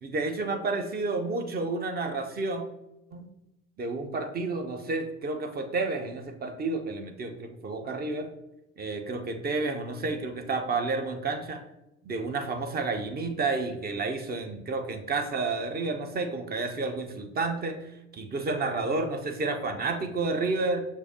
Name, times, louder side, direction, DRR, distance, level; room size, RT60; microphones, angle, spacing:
voice 1, 0.0-2.7 3.1-3.3 3.8-8.3 8.8-11.6 12.0-17.8 18.1-20.8, right 3 dB, 25° right, 6 dB, 0.6 m, -30 dB
6.2 x 2.7 x 2.7 m, 0.89 s
figure-of-eight pair, 55°, 39 cm